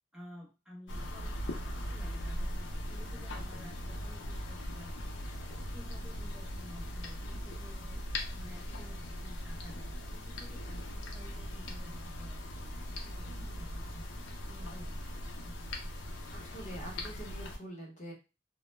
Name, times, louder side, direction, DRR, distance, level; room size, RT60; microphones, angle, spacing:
voice 1, 0.1-5.1 5.5-15.6, equal, ahead, -5 dB, 0.7 m, -53 dB
sound 1, 0.9-17.6, equal, 75° left, 0.5 m, -40 dB
voice 2, 13.2-13.6 16.3-18.1, right 1 dB, 45° left, -2 dB, 0.8 m, -46 dB
2.1 x 2.0 x 3.0 m, 0.29 s
head